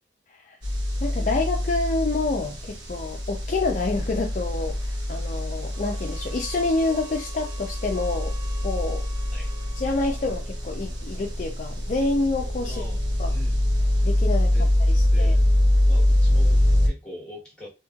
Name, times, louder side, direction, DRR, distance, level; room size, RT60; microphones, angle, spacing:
sound 1, 0.6-16.9, left 1 dB, 85° right, 1.0 m, -24 dB
voice 1, 1.0-8.4 8.6-9.0 9.8-12.8 13.2-13.3 14.0-15.4, left 3 dB, 40° left, 0.4 m, -28 dB
sound 2, 5.7-10.5, right 2 dB, 30° right, 0.7 m, -48 dB
voice 2, 12.6-13.0 13.3-13.7 14.5-15.5 15.9-17.7, left 1 dB, 5° left, 1.3 m, -43 dB
3.0 x 2.8 x 2.3 m
head